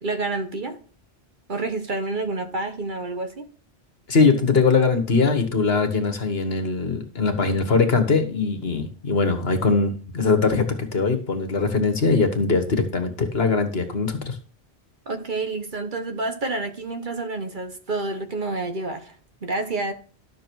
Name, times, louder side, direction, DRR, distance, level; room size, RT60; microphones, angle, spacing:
voice 1, 0.0-0.8 1.5-3.5 15.1-19.1 19.4-19.9, right 2 dB, 50° right, 1.1 m, -28 dB
voice 2, 4.1-10.7 10.9-14.4, left 4 dB, 65° left, 1.7 m, -21 dB
11.5 x 6.9 x 4.7 m
omnidirectional pair, 1.1 m